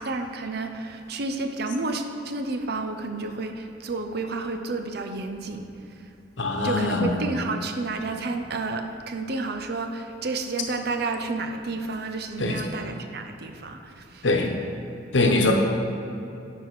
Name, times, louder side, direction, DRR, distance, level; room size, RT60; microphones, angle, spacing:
voice 1, 0.0-5.6 6.6-14.3 15.2-15.4, right 3 dB, 60° right, 6 dB, 0.6 m, -31 dB
voice 2, 6.4-7.1 12.4-12.6 14.2-14.5 15.1-15.5, left 2 dB, 80° left, 2 dB, 1.0 m, -22 dB
9.5 x 4.8 x 5.0 m, 2.8 s
head